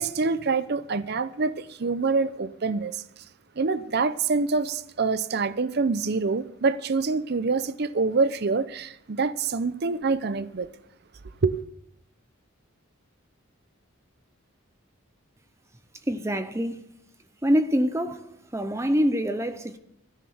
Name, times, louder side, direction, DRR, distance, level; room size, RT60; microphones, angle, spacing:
voice 1, 0.0-3.2 3.6-10.7 11.4-11.6, right 4 dB, 55° right, 0.6 m, -26 dB
voice 2, 16.1-16.8 17.4-18.2 18.5-19.8, equal, 15° right, 0.6 m, -25 dB
14.5 x 6.6 x 9.4 m
head